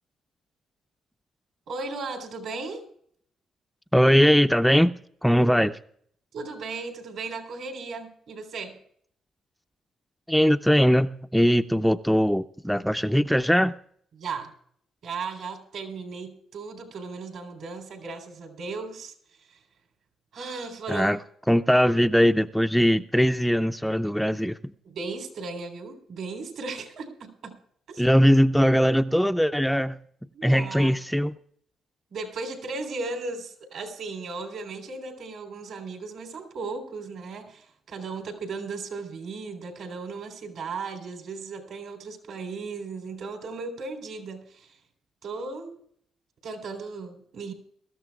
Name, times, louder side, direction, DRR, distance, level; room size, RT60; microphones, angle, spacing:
voice 1, 1.7-2.8 5.4-5.7 6.3-8.8 14.2-14.5 15.0-19.6 20.3-21.2 24.8-27.6 27.9-28.1 30.3-31.0 32.1-44.8 45.2-45.7 46.4-47.5, right 4 dB, 75° right, 3.5 m, -36 dB
voice 2, 3.9-5.8 10.3-13.8 20.9-21.2 21.5-24.7 28.0-30.0 30.4-31.3, equal, ahead, 0.4 m, -21 dB
23.0 x 13.5 x 2.3 m
cardioid pair, 90°, 0 cm